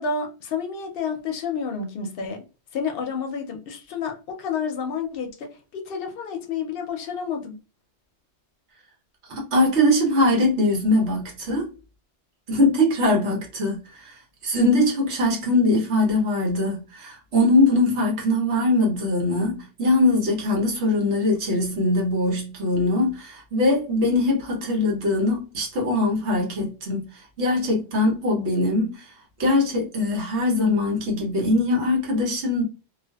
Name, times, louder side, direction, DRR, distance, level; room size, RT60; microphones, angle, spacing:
voice 1, 0.0-2.4 2.7-7.5, left 6 dB, 65° left, 0.7 m, -30 dB
voice 2, 9.3-11.7 12.5-29.1 29.4-32.6, left 2 dB, 80° right, 1.2 m, -22 dB
2.5 x 2.4 x 2.2 m
omnidirectional pair, 1.1 m